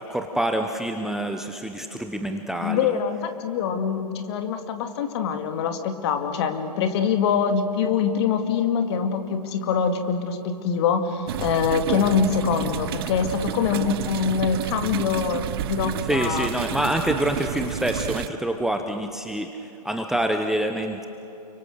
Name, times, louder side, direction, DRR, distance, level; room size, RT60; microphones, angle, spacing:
voice 1, 0.0-3.0 16.1-19.5 19.8-21.1, right 1 dB, ahead, 5 dB, 0.9 m, -26 dB
voice 2, 2.6-16.5, left 6 dB, 40° left, 7 dB, 2.3 m, -24 dB
sound 1, 11.3-18.3, right 13 dB, 35° right, 0.7 m, -31 dB
30.0 x 24.0 x 6.6 m, 3.0 s
figure-of-eight pair, 120°, 21 cm